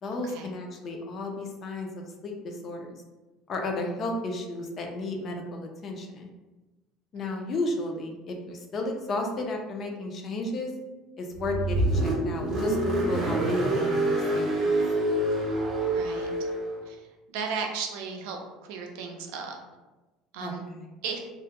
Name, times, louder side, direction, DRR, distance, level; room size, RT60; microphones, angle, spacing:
voice 1, 0.0-2.9 3.5-6.3 7.1-10.7 11.2-14.8 20.4-20.9, left 2 dB, 35° left, 2 dB, 0.4 m, -33 dB
Car, 11.3-16.8, right 1 dB, 35° right, 0.6 m, -26 dB
voice 2, 15.9-16.5 16.9-18.4 18.7-19.6 20.3-20.6 21.0-21.2, right 5 dB, 80° right, 2 dB, 0.4 m, -35 dB
2.2 x 2.0 x 2.8 m, 1.1 s
cardioid pair, 140°, 0 cm